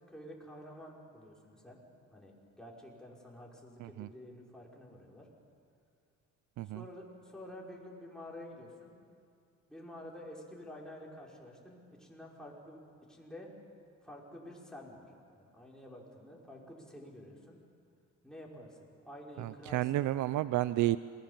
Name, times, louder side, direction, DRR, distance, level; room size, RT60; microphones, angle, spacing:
voice 1, 0.1-1.8 2.1-5.3 6.7-8.9 9.7-12.8 13.1-13.5 14.0-15.1 15.3-17.6 18.2-18.8 19.1-20.1, left 1 dB, ahead, -3 dB, 5.7 m, -49 dB
voice 2, 19.4-21.0, right 15 dB, 75° right, 15 dB, 0.5 m, -31 dB
27.5 x 20.5 x 7.4 m, 2.4 s
cardioid pair, 90°, 30 cm